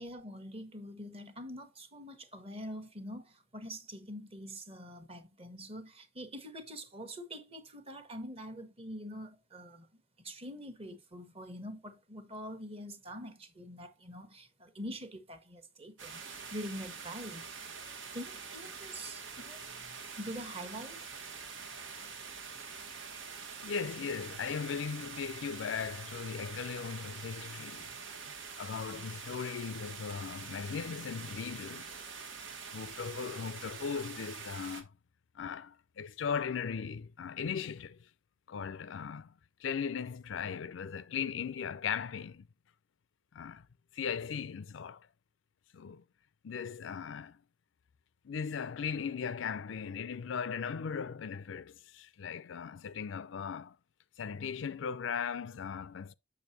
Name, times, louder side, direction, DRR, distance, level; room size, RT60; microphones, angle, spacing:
voice 1, 0.0-9.9 10.2-16.2 16.5-17.5 18.1-21.0, equal, 30° right, 1.1 m, -45 dB
sound 1, 16.0-34.8, right 5 dB, 85° right, 1.3 m, -45 dB
voice 2, 23.6-28.0 28.2-31.9 32.7-34.9 35.4-38.0 38.5-39.3 39.6-42.5 43.3-43.7 43.9-45.1 45.7-46.0 46.4-47.4 48.2-53.8 54.2-56.1, left 6 dB, 85° left, 0.4 m, -38 dB
7.1 x 6.7 x 2.7 m
head